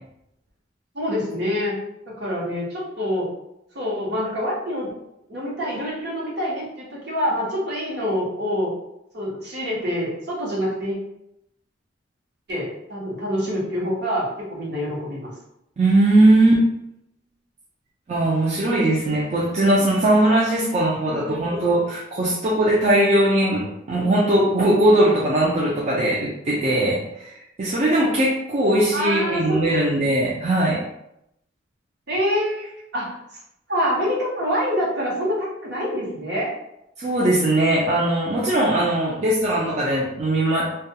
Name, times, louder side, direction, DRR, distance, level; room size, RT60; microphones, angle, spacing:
voice 1, 0.9-1.8 2.2-3.3 3.7-4.9 5.3-8.7 9.1-11.0 12.5-15.3 21.2-21.4 28.9-29.8 32.1-33.2 33.7-36.5, equal, 60° right, -5 dB, 0.9 m, -26 dB
voice 2, 15.8-16.6 18.1-30.8 37.0-40.7, right 1 dB, 35° right, -5 dB, 0.4 m, -20 dB
2.2 x 2.2 x 2.7 m, 0.82 s
head